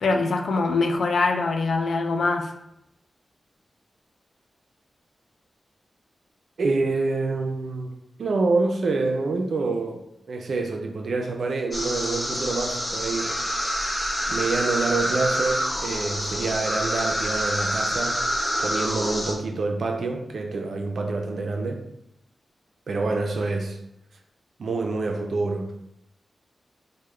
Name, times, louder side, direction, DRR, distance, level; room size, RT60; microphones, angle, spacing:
voice 1, 0.0-2.5, left 3 dB, 85° left, 0.4 m, -23 dB
voice 2, 6.6-7.9 8.2-13.4 14.3-18.2 18.6-21.8 22.9-23.8 24.6-25.8, right 3 dB, 75° right, 0.4 m, -26 dB
sound 1, 11.7-19.3, equal, 25° left, 0.7 m, -27 dB
3.5 x 2.1 x 3.1 m
cardioid pair, 75°, 0 cm